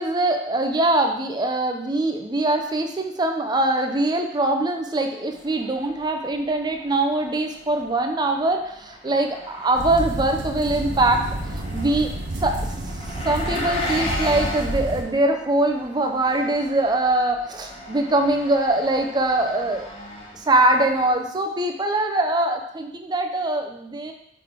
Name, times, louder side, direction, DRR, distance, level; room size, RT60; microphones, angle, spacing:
voice 1, 0.0-11.3 11.5-12.1 12.4-12.7 13.2-19.9 20.3-24.1, right 2 dB, 25° right, 4 dB, 0.6 m, -22 dB
Engine, 5.3-21.1, left 1 dB, 30° left, 1.2 m, -36 dB
sound 1, 9.7-15.0, right 1 dB, 85° right, 0.9 m, -30 dB
5.0 x 4.0 x 4.6 m, 0.75 s
head